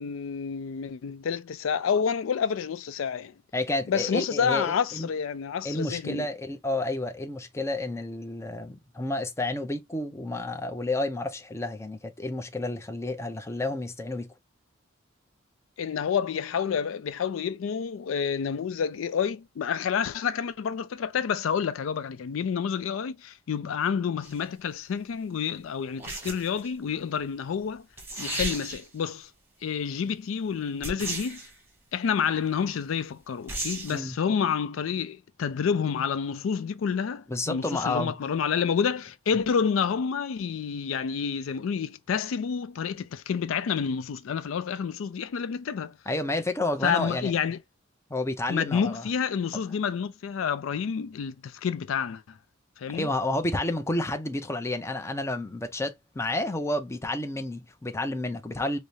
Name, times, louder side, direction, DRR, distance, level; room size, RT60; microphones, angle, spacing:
voice 1, 0.0-3.3 3.9-6.3 15.8-27.8 28.2-29.3 29.6-31.4 31.9-45.9 46.8-47.6 48.5-52.2 52.8-53.1, left 7 dB, 85° left, 0.4 m, -29 dB
voice 2, 3.5-5.1 5.6-14.3 33.9-34.1 37.3-38.2 46.1-47.3 48.1-49.1 52.9-58.8, left 2 dB, 15° left, 0.5 m, -30 dB
sound 1, 24.2-24.5 26.0-26.7 27.7-27.8 28.0-29.0 30.8-31.5 33.5-34.0, right 2 dB, 10° right, 1.1 m, -34 dB
4.8 x 2.0 x 2.6 m
head